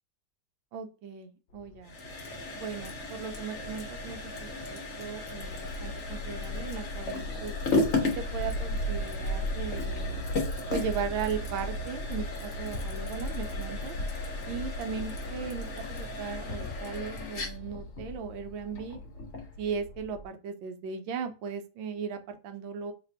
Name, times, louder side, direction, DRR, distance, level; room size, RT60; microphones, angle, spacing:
voice 1, 0.7-2.0 2.6-7.5 8.0-10.3 10.7-14.0 14.5-19.0 19.6-22.9, right 6 dB, 75° right, 7 dB, 1.3 m, -37 dB
sound 1, 1.5-20.3, equal, 75° left, 1.2 m, -38 dB
sound 2, 1.8-19.5, left 2 dB, 45° left, 1.0 m, -36 dB
3.3 x 2.5 x 4.1 m, 0.34 s
omnidirectional pair, 2.2 m